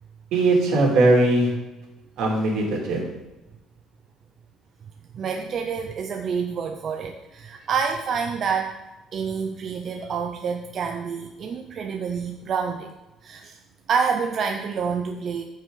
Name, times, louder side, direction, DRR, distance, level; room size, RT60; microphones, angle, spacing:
voice 1, 0.3-1.5 2.2-3.0, right 2 dB, 70° right, -1 dB, 2.6 m, -19 dB
voice 2, 5.1-8.7 9.1-12.9 13.2-13.6 13.9-15.4, right 6 dB, 40° right, 3 dB, 0.6 m, -27 dB
13.5 x 5.4 x 3.9 m, 1.1 s
cardioid pair, 160°, 0 cm